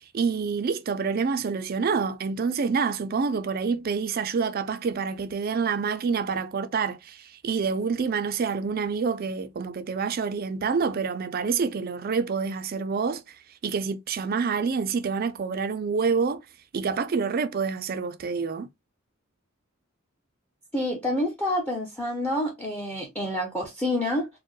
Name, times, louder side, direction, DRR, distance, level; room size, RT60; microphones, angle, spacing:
voice 1, 0.0-13.4 13.6-16.4 16.7-18.7, right 5 dB, 45° right, 0.4 m, -27 dB
voice 2, 20.7-24.3, left 1 dB, 5° left, 0.7 m, -28 dB
4.3 x 2.1 x 3.1 m
head